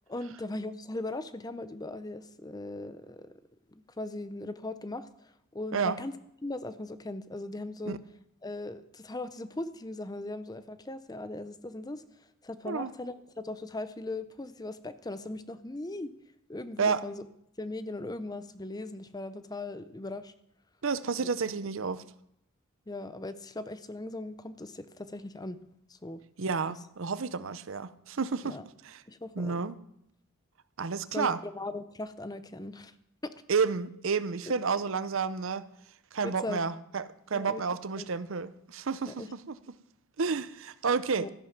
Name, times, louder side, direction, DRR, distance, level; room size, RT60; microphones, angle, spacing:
voice 1, 0.1-3.3 3.7-5.1 5.5-6.1 6.4-8.0 8.4-12.0 12.4-16.1 16.5-17.2 17.6-20.3 21.2-21.3 21.7-21.8 22.9-25.6 25.9-26.2 28.4-28.6 29.1-29.6 31.1-32.9 33.2-33.3 34.4-34.5 36.2-36.6 37.3-37.6 38.0-38.1 39.1-39.3 41.2-41.3, left 2 dB, 20° left, 0.6 m, -39 dB
voice 2, 20.8-22.0 26.4-28.6 28.8-29.0 29.4-29.8 30.8-31.4 33.5-35.7 36.1-37.0 37.3-39.6 40.2-41.3, right 5 dB, 60° right, 0.6 m, -30 dB
13.5 x 10.5 x 5.9 m
head